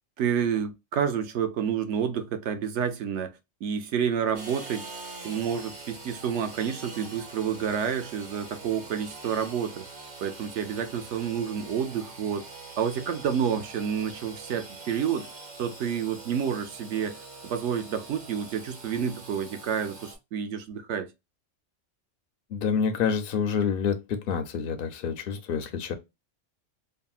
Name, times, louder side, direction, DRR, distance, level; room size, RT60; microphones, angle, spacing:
voice 1, 0.2-3.3 3.6-4.9 5.2-9.9 10.2-12.5 12.8-15.3 15.6-17.2 17.4-21.1, right 8 dB, 70° right, 0.9 m, -29 dB
Engine / Sawing, 4.3-20.2, right 3 dB, 45° right, 1.1 m, -44 dB
voice 2, 22.5-25.9, left 6 dB, 60° left, 0.6 m, -28 dB
3.4 x 2.1 x 2.3 m
omnidirectional pair, 1.3 m